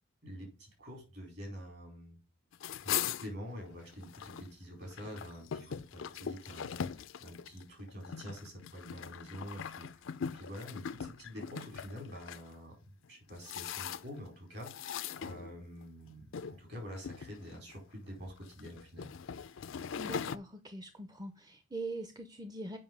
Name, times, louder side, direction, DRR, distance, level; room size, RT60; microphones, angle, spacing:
voice 1, 0.2-2.2 2.8-10.0 10.3-19.1, equal, 55° right, 4.6 m, -47 dB
sound 1, 2.5-4.5 4.8-12.4 13.0-14.3 14.6-15.8 16.3-16.6 17.0-17.7 18.4-20.4, left 8 dB, 80° left, 0.4 m, -40 dB
voice 2, 20.0-22.8, right 2 dB, 20° right, 0.6 m, -42 dB
7.6 x 5.5 x 5.3 m
head